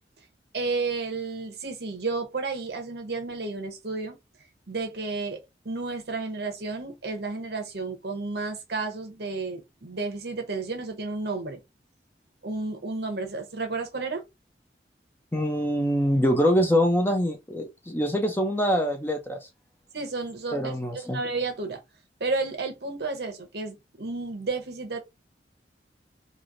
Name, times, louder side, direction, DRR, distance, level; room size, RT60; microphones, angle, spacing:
voice 1, 0.5-4.2 4.7-5.4 5.6-11.6 12.4-14.2 19.9-21.8 22.2-25.0, right 3 dB, 65° right, 0.9 m, -32 dB
voice 2, 15.3-19.4 20.5-21.2, equal, 10° left, 0.5 m, -24 dB
3.1 x 2.6 x 2.5 m
head